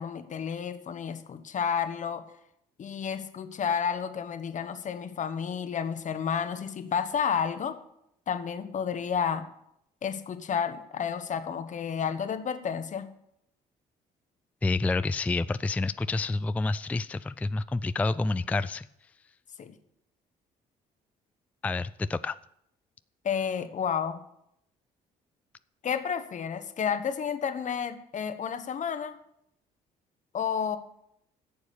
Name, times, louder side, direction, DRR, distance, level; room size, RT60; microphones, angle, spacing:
voice 1, 0.0-2.2 2.8-7.8 8.3-9.4 10.0-13.1 19.6-19.8 23.2-24.2 25.8-29.2 30.3-30.8, left 7 dB, 50° left, 10 dB, 1.2 m, -31 dB
voice 2, 14.6-18.9 21.6-22.4, left 3 dB, 10° left, 14 dB, 0.3 m, -28 dB
11.0 x 7.1 x 6.8 m, 0.77 s
supercardioid pair, 75°, 17 cm